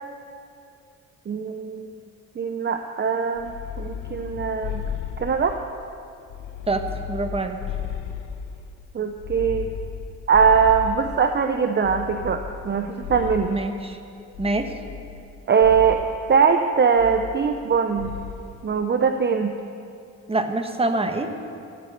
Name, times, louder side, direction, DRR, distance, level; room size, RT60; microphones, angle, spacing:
voice 1, 1.3-2.0 2.4-4.8 5.2-5.6 8.9-9.7 10.3-13.6 15.5-16.0 16.3-18.1 18.6-19.5, right 6 dB, 35° right, 6 dB, 0.9 m, -21 dB
sound 1, 3.4-5.8 6.3-8.7 9.2-11.4 11.8-13.7 14.3-15.3 15.6-16.1 17.0-17.7 18.0-18.4, left 8 dB, 85° left, 1.2 m, -34 dB
voice 2, 6.7-7.6 13.5-14.0 14.4-14.7 20.3-21.3, right 2 dB, 20° right, 6 dB, 1.4 m, -25 dB
15.0 x 13.0 x 6.9 m, 2.5 s
cardioid pair, 90°, 30 cm